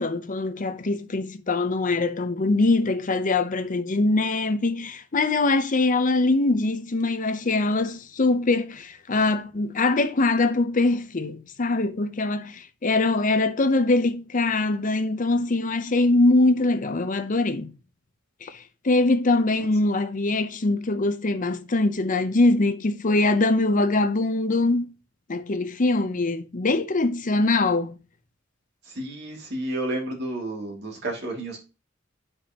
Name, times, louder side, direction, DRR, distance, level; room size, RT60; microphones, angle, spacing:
voice 1, 0.0-17.7 18.4-18.6 18.8-24.9 25.3-28.0, left 2 dB, 40° left, 0.7 m, -23 dB
voice 2, 28.9-31.6, right 1 dB, 60° right, 2.4 m, -31 dB
9.9 x 5.6 x 2.9 m
head